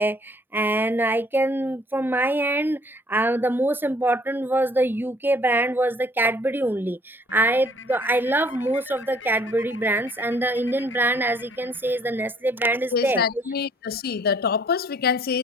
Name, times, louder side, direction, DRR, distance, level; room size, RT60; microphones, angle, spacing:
voice 1, 0.0-13.2, right 1 dB, 10° right, 0.9 m, -24 dB
sound 1, 7.3-12.5, left 6 dB, 85° left, 5.2 m, -43 dB
voice 2, 12.9-15.4, left 6 dB, 50° left, 0.4 m, -25 dB
head